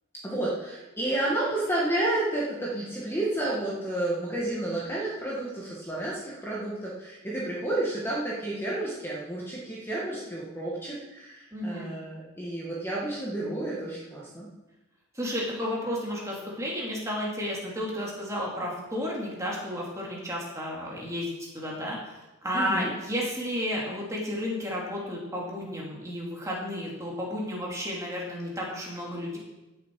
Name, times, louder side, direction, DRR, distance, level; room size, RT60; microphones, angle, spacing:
voice 1, 0.2-14.5 22.5-22.9, right 1 dB, 10° left, -5 dB, 1.9 m, -31 dB
voice 2, 11.5-11.9 15.1-22.0 22.4-29.4, equal, 15° right, -3 dB, 2.9 m, -32 dB
15.5 x 7.1 x 4.8 m, 1.0 s
head